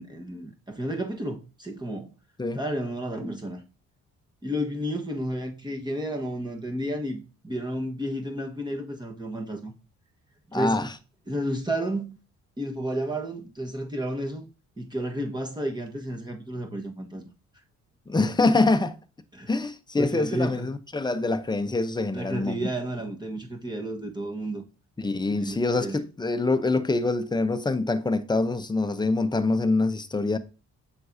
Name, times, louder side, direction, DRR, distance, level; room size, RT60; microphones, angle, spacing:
voice 1, 0.0-2.1 2.5-3.6 4.4-9.7 10.5-10.9 11.3-12.2 12.6-14.5 14.8-17.2 19.3-19.5 20.0-20.7 22.1-24.6 25.3-26.0, right 1 dB, 15° right, 1.3 m, -31 dB
voice 2, 10.5-10.9 18.1-19.0 19.5-22.7 25.0-30.4, left 3 dB, 15° left, 0.7 m, -25 dB
7.6 x 6.1 x 2.7 m
cardioid pair, 90°, 30 cm